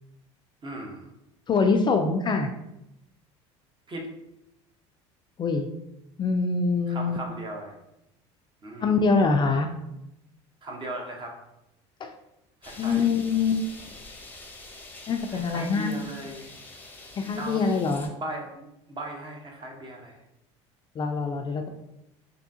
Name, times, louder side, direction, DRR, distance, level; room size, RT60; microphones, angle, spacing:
voice 1, 0.6-1.1 3.9-4.1 6.9-7.7 8.6-8.9 10.6-11.3 12.6-13.1 15.3-16.5 17.3-17.6 18.2-20.2, right 1 dB, 30° right, 1 dB, 0.9 m, -37 dB
voice 2, 1.5-2.5 5.4-5.7 6.2-7.2 8.8-9.7 12.0-12.1 12.8-13.6 15.1-16.0 17.2-18.1 21.0-21.7, left 4 dB, 30° left, 5 dB, 0.3 m, -24 dB
sound 1, 12.6-18.1, left 2 dB, 10° left, 0.7 m, -45 dB
3.5 x 2.6 x 2.7 m, 0.87 s
hypercardioid pair, 80°, 15 cm